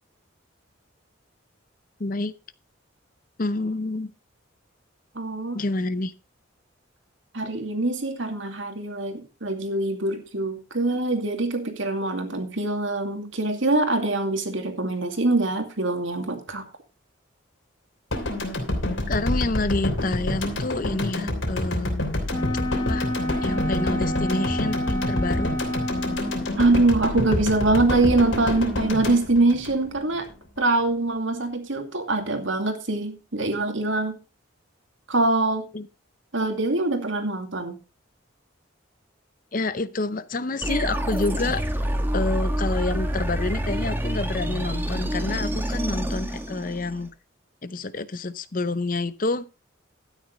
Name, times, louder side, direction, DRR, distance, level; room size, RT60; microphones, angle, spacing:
voice 1, 2.0-2.3 3.4-4.1 5.5-6.1 19.1-22.0 22.7-23.1 23.4-25.5 35.7-35.9 39.5-41.6 42.1-47.1 47.6-49.5, left 2 dB, 40° left, 0.6 m, -28 dB
voice 2, 5.1-5.6 7.3-16.7 26.6-30.3 30.6-34.2 35.1-35.7 36.3-37.8, right 2 dB, 70° right, 2.4 m, -24 dB
sound 1, 18.1-30.3, left 1 dB, 70° left, 3.1 m, -28 dB
Wind instrument woodwind instrument, 22.3-26.6, left 1 dB, 15° left, 1.8 m, -29 dB
sound 2, 40.6-47.1, equal, 10° right, 1.4 m, -27 dB
12.5 x 9.6 x 3.9 m
head